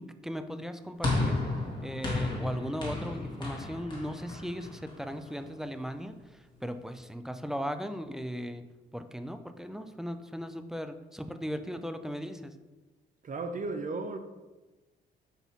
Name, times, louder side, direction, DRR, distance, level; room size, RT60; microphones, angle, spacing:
voice 1, 0.0-1.4 1.8-8.7 8.9-12.5, equal, ahead, 0.5 m, -37 dB
sound 1, 1.0-5.5, left 2 dB, 25° left, 2.2 m, -33 dB
voice 2, 13.2-14.2, right 3 dB, 40° right, 0.7 m, -34 dB
5.7 x 5.6 x 4.5 m
cardioid pair, 90°, 20 cm